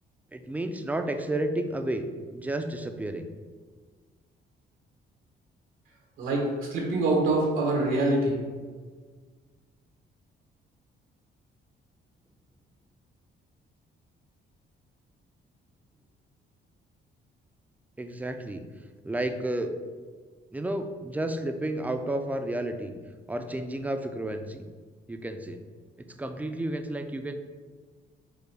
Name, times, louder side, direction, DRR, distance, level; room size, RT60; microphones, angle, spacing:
voice 1, 0.3-3.3 18.0-18.6 19.0-19.8 20.5-22.9 23.3-24.7 25.1-25.6 26.2-27.3, right 1 dB, 10° right, 7 dB, 0.4 m, -31 dB
voice 2, 6.2-8.4, right 2 dB, 90° right, -2 dB, 1.2 m, -25 dB
4.9 x 2.2 x 4.7 m, 1.5 s
cardioid pair, 90°, 20 cm